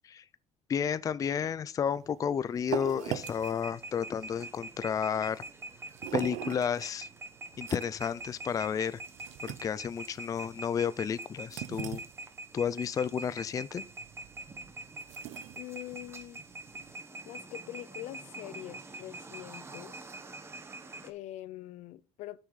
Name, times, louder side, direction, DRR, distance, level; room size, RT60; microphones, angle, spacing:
voice 1, 0.7-5.4 6.1-7.1 7.6-9.0 9.4-12.0 12.5-13.8, left 7 dB, 30° left, 0.4 m, -32 dB
Brick pickup sound - tile counter, 1.9-16.9, right 13 dB, 85° right, 0.6 m, -43 dB
sound 1, 3.1-21.1, right 3 dB, 20° right, 1.0 m, -45 dB
voice 2, 15.5-16.4 17.3-20.0 21.0-22.4, left 15 dB, 80° left, 0.5 m, -44 dB
9.8 x 6.1 x 4.0 m
cardioid pair, 125°, 12 cm